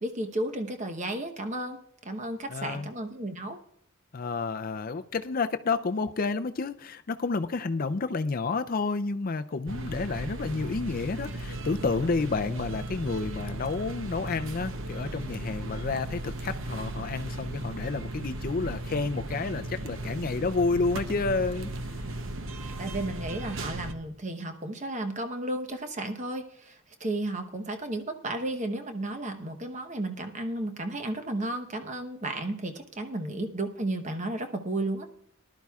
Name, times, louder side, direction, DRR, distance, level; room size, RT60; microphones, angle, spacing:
voice 1, 0.0-3.6 22.8-35.1, right 1 dB, 30° right, 0.9 m, -33 dB
voice 2, 2.5-2.9 4.1-21.7, left 4 dB, 40° left, 0.4 m, -30 dB
sound 1, 9.7-23.9, right 1 dB, 60° right, 0.8 m, -36 dB
19.5 x 11.5 x 2.4 m
head